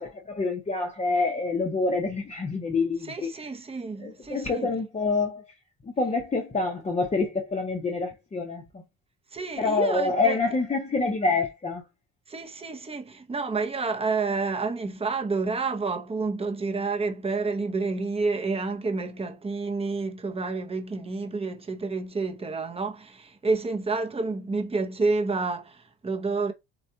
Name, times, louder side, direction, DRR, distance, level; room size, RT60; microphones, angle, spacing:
voice 1, 0.0-3.3 4.0-5.4 5.8-8.8 9.6-11.9, left 3 dB, 20° left, 0.8 m, -27 dB
voice 2, 3.0-4.7 9.3-10.4 12.3-26.5, right 3 dB, 15° right, 0.8 m, -29 dB
4.6 x 4.1 x 2.8 m
cardioid pair, 140°, 34 cm